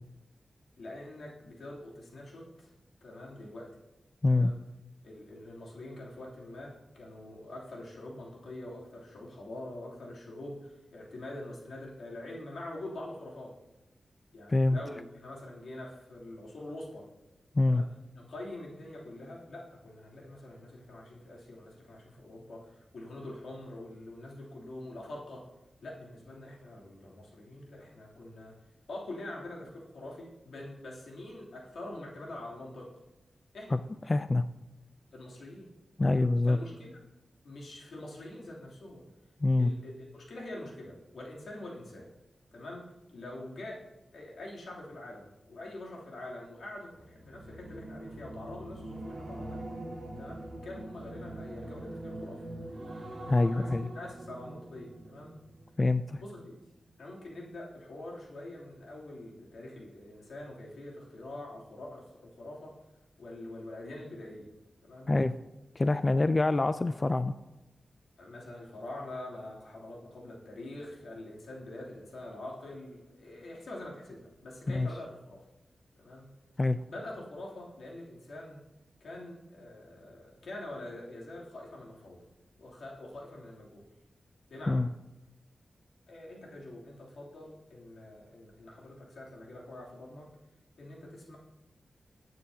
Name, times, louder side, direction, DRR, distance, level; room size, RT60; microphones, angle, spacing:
voice 1, 0.8-2.7 3.0-3.8 4.3-4.6 5.0-13.6 14.3-17.1 17.6-17.9 18.1-25.5 25.8-28.6 28.9-32.9 33.5-33.8 35.1-35.7 36.0-37.0 37.4-39.0 39.6-42.1 42.5-43.9 44.1-49.8 50.2-52.5 53.4-55.4 56.2-56.5 57.0-62.8 63.2-64.5 64.8-65.1 68.2-75.5 76.0-76.3 76.9-78.6 79.0-82.2 82.6-83.9 84.5-84.8 86.1-90.3 90.8-91.4, left 1 dB, 85° left, -3 dB, 2.9 m, -45 dB
voice 2, 34.1-34.4 36.0-36.6 39.4-39.7 53.3-53.9 55.8-56.2 65.1-65.3 65.8-67.3 74.7-74.9 76.6-76.8 84.7-84.9, left 2 dB, 30° left, 11 dB, 0.3 m, -25 dB
female voice choral, 46.9-56.2 56.6-56.9, right 1 dB, 50° right, 2.4 m, -43 dB
19.5 x 9.3 x 2.8 m, 0.97 s
wide cardioid pair, 110°, 0 cm